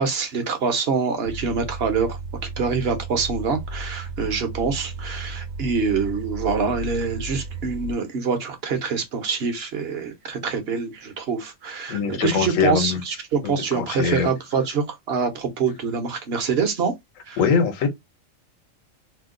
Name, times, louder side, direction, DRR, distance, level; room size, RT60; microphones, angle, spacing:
voice 1, 0.0-2.2 2.6-16.9 17.3-17.4, right 5 dB, 55° right, 0.9 m, -25 dB
sound 1, 1.3-7.9, right 3 dB, 80° right, 1.0 m, -34 dB
voice 2, 11.9-13.0 13.4-14.3 17.4-17.9, left 6 dB, 80° left, 1.2 m, -22 dB
2.8 x 2.2 x 3.6 m
omnidirectional pair, 1.3 m